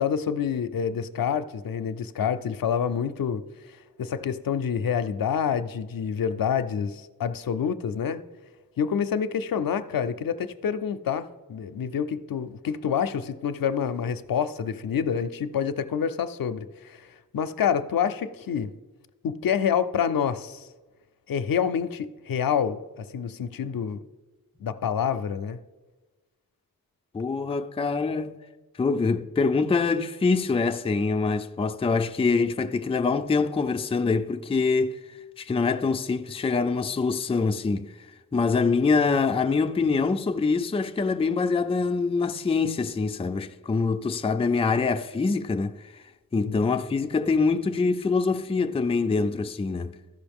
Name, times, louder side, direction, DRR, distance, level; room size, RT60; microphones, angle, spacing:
voice 1, 0.0-3.4 4.0-8.2 8.8-17.1 17.3-18.7 19.2-20.7 21.3-24.0 24.6-25.6 46.3-46.6, left 7 dB, 75° left, 0.5 m, -27 dB
voice 2, 27.1-28.3 28.8-35.0 35.4-38.1 38.3-46.0 46.3-50.0, left 4 dB, 15° left, 0.3 m, -25 dB
13.5 x 5.4 x 3.5 m
wide cardioid pair, 90°, 35 cm